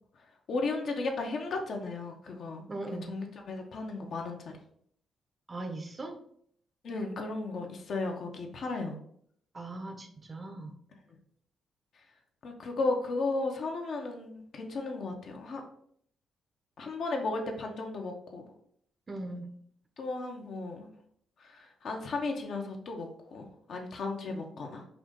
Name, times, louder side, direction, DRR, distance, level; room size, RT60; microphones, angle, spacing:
voice 1, 0.5-4.6 6.8-9.0 12.4-15.6 16.8-18.4 20.0-20.9 21.4-24.8, left 3 dB, 65° left, 2 dB, 0.9 m, -35 dB
voice 2, 2.7-3.2 5.5-6.2 9.5-10.8 19.1-19.5 24.3-24.4, right 2 dB, 35° right, 6 dB, 0.7 m, -39 dB
4.9 x 2.6 x 3.7 m, 0.65 s
cardioid pair, 70°, 0 cm